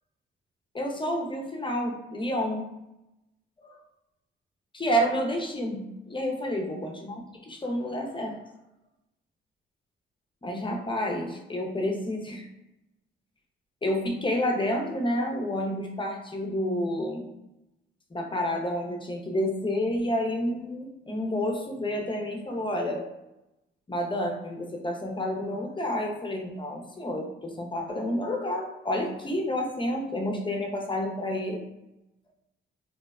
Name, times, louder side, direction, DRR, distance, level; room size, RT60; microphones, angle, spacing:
voice 1, 0.7-2.7 3.6-3.8 4.7-8.4 10.4-12.5 13.8-17.3 18.1-23.1 23.9-31.7, equal, 25° left, 1 dB, 0.5 m, -29 dB
2.7 x 2.0 x 2.3 m, 0.93 s
supercardioid pair, 60°, 21 cm